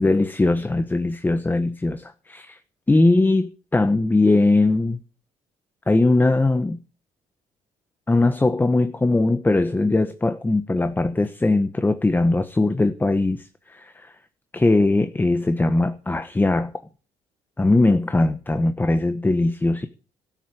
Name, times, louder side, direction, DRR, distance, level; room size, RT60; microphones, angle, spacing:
voice 1, 0.0-2.6 2.9-5.0 5.9-6.8 8.1-14.1 14.5-16.7 17.6-19.9, left 2 dB, 15° left, 1.2 m, -20 dB
13.0 x 9.8 x 8.5 m
cardioid pair, 100°, 14 cm